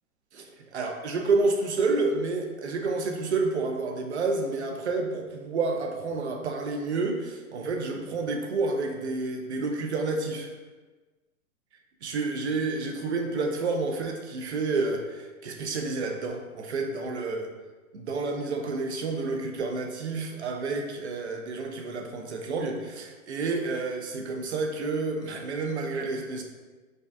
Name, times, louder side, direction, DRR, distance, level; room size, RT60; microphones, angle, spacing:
voice 1, 0.3-10.5 12.0-17.5 17.9-26.4, right 3 dB, 50° right, 3 dB, 0.5 m, -29 dB
5.0 x 2.2 x 2.4 m, 1.3 s
hypercardioid pair, 170°, 44 cm